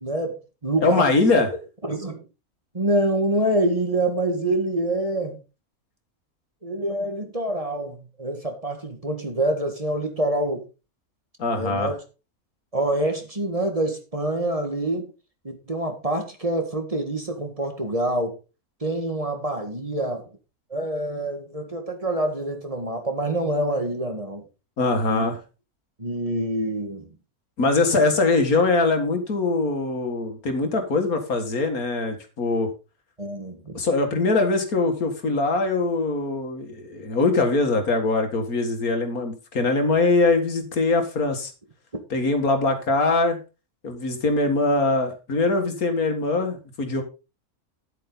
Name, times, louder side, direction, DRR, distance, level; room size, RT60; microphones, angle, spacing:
voice 1, 0.0-1.1 1.8-2.2 2.7-5.4 6.6-10.6 11.6-12.0 12.7-15.1 15.4-18.3 18.8-20.2 20.7-24.4 25.1-25.3 26.0-27.1 33.2-33.8, right 1 dB, 25° right, 1.9 m, -26 dB
voice 2, 0.8-1.5 11.4-11.9 24.8-25.4 27.6-32.7 33.7-41.5 42.1-43.4 43.8-47.0, left 3 dB, 75° left, 2.4 m, -22 dB
10.5 x 8.2 x 4.0 m
omnidirectional pair, 1.6 m